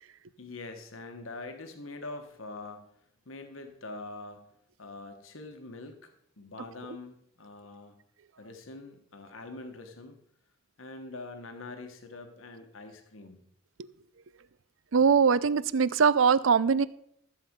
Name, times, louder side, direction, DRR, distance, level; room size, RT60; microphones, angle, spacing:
voice 1, 0.4-2.9 3.3-4.4 4.8-6.1 6.4-8.0 8.4-10.2 10.8-13.4, left 2 dB, 85° left, 5 dB, 1.4 m, -44 dB
voice 2, 14.9-16.9, right 6 dB, 75° right, 18 dB, 0.5 m, -22 dB
14.0 x 7.8 x 5.3 m, 0.70 s
head